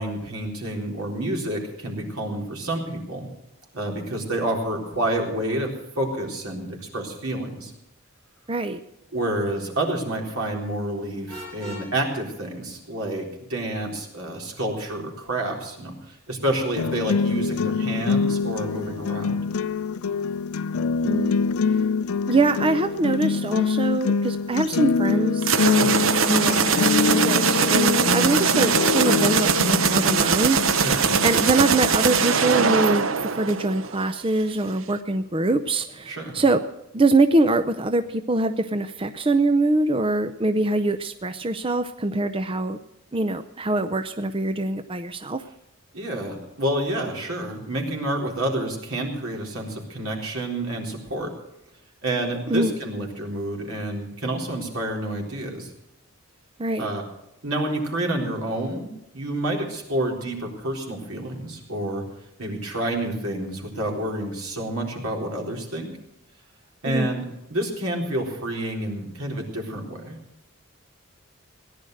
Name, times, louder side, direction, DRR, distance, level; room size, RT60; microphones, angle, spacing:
voice 1, 0.0-3.3 3.7-7.7 9.1-19.4 25.7-26.0 30.8-31.1 36.1-36.4 45.9-51.3 52.0-55.7 56.8-57.0 57.4-62.0 62.4-65.9 66.8-67.2 67.5-70.1, right 1 dB, 85° right, 0 dB, 3.9 m, -29 dB
voice 2, 8.5-8.8 21.0-21.3 22.3-26.8 27.1-30.9 31.2-36.6 36.9-42.8 43.1-45.4 52.5-52.7 56.6-56.9 66.8-67.1, right 2 dB, 25° right, 9 dB, 0.6 m, -23 dB
Vehicle horn car horn honking, 11.3-11.9, equal, 5° left, 7.1 m, -38 dB
sound 1, 16.8-32.8, left 5 dB, 85° left, 0.5 m, -25 dB
sound 2, 25.4-34.1, right 6 dB, 65° right, 0.8 m, -21 dB
17.5 x 10.5 x 6.5 m, 0.89 s
head